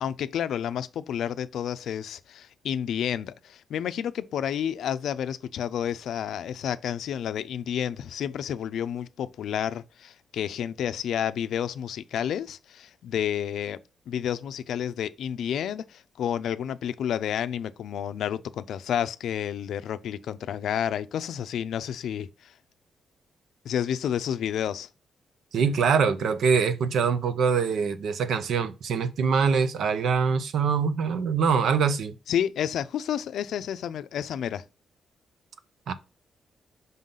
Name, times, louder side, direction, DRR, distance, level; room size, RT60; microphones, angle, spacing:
voice 1, 0.0-13.8 14.1-22.5 23.6-24.9 32.3-34.6, left 9 dB, 80° left, 0.4 m, -30 dB
voice 2, 25.5-32.1 35.9-36.0, right 6 dB, 65° right, 0.7 m, -24 dB
5.5 x 3.8 x 5.5 m
wide cardioid pair, 170°, 0 cm